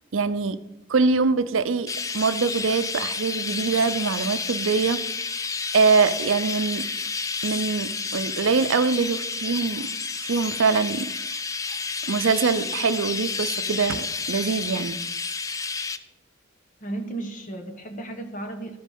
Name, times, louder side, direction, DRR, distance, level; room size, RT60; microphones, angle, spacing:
voice 1, 0.1-0.6 0.9-5.0 5.7-6.8 7.4-9.9 10.2-11.1 12.1-15.0, right 4 dB, 70° right, 13 dB, 0.5 m, -23 dB
Chirp tweet, 1.9-16.0, left 4 dB, 15° left, 0.3 m, -30 dB
voice 2, 16.8-18.8, right 2 dB, 40° left, 6 dB, 1.1 m, -34 dB
12.5 x 5.2 x 5.5 m, 0.89 s
head